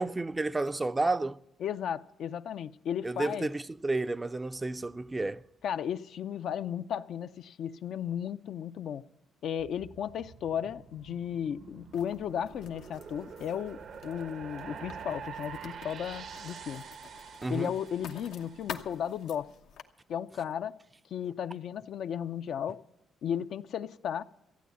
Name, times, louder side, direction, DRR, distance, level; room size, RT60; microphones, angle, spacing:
voice 1, 0.0-1.4 3.0-5.4 17.4-17.7, right 2 dB, 20° right, 0.4 m, -31 dB
voice 2, 1.6-3.5 5.6-9.0 9.4-16.8 17.5-19.5 20.1-20.8 21.1-22.8 23.2-24.2, left 9 dB, 70° left, 0.5 m, -35 dB
sound 1, 9.6-19.0, right 6 dB, 60° right, 0.8 m, -46 dB
Writing, 11.9-19.8, left 7 dB, 90° left, 1.0 m, -48 dB
14.5 x 9.2 x 8.2 m
cardioid pair, 90°, 0 cm